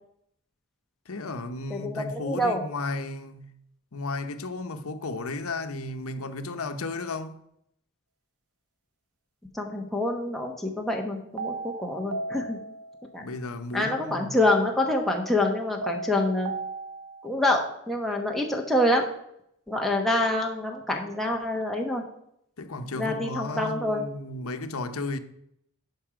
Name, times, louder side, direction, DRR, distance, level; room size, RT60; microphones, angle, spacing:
voice 1, 1.1-3.5 3.9-7.4 13.2-14.4 22.6-25.2, left 2 dB, 75° left, 0.8 m, -34 dB
voice 2, 1.7-2.6 9.5-12.6 13.1-13.3 13.7-16.5 17.2-19.0 19.7-22.0 23.0-24.0, left 1 dB, ahead, 1.2 m, -26 dB
sound 1, 11.4-13.3 15.8-17.3, right 3 dB, 90° right, 0.7 m, -36 dB
11.0 x 5.5 x 5.0 m
head